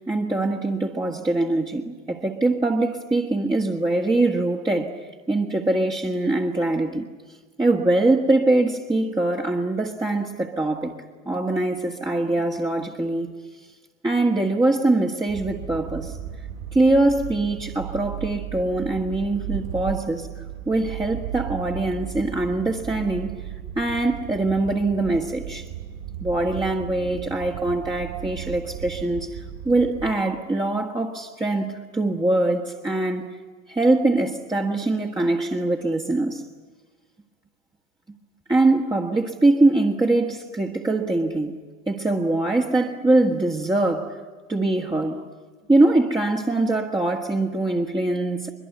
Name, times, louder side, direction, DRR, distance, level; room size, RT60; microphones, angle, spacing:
voice 1, 0.0-7.1 7.6-10.9 11.2-13.3 14.0-16.2 16.7-23.4 23.7-25.7 26.2-33.3 33.7-36.4 38.5-41.6 41.9-44.2 44.5-45.2 45.7-48.5, right 2 dB, 10° right, 1.7 m, -23 dB
sound 1, 15.3-30.1, right 10 dB, 60° right, 4.9 m, -36 dB
23.5 x 22.5 x 9.4 m
figure-of-eight pair, 70°, 40 cm